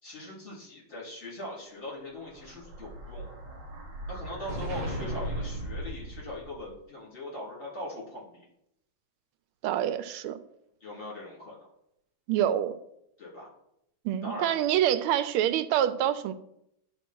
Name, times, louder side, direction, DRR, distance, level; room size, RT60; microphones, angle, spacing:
voice 1, 0.0-3.3 4.1-8.5 10.8-11.6 13.2-13.5 14.2-14.5, left 1 dB, 30° left, -6 dB, 3.7 m, -40 dB
Explosion, 2.0-6.7, right 1 dB, 40° right, 1.7 m, -37 dB
voice 2, 9.6-10.4 12.3-12.8 14.0-16.3, right 11 dB, 90° right, 12 dB, 1.5 m, -26 dB
11.0 x 3.9 x 4.5 m, 0.79 s
omnidirectional pair, 2.3 m